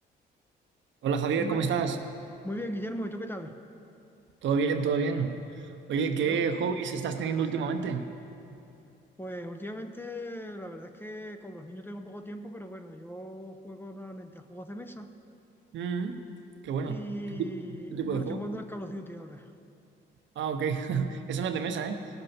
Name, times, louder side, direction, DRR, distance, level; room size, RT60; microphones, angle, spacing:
voice 1, 1.0-2.0 4.4-5.3 5.9-8.1 15.7-16.2 16.6-17.0 17.3-17.5 17.9-18.4 20.4-22.0, right 6 dB, 70° right, 7 dB, 0.8 m, -29 dB
voice 2, 2.4-3.6 6.2-6.5 9.2-15.1 16.8-19.5, equal, 10° left, 7 dB, 0.6 m, -39 dB
17.0 x 6.7 x 4.3 m, 2.6 s
cardioid pair, 90°, 20 cm